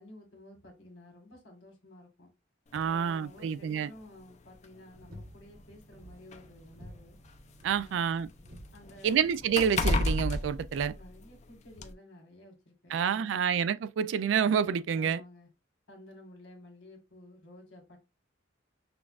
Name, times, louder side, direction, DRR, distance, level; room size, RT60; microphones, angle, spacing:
voice 1, 0.0-2.3 2.8-7.2 7.7-8.3 8.7-9.3 10.9-13.5 14.9-15.5 15.9-18.0, left 1 dB, 75° left, 1.6 m, -53 dB
sound 1, 2.7-2.9 4.0-4.1 4.5-4.6 5.6-7.6 7.9-11.4 11.8-11.9, left 2 dB, 40° left, 0.5 m, -32 dB
voice 2, 2.7-3.9 7.6-8.3 9.0-10.9 12.9-15.2, right 7 dB, 70° right, 0.3 m, -28 dB
sound 2, 4.9-10.1, equal, 50° right, 1.1 m, -52 dB
5.8 x 2.4 x 2.4 m
head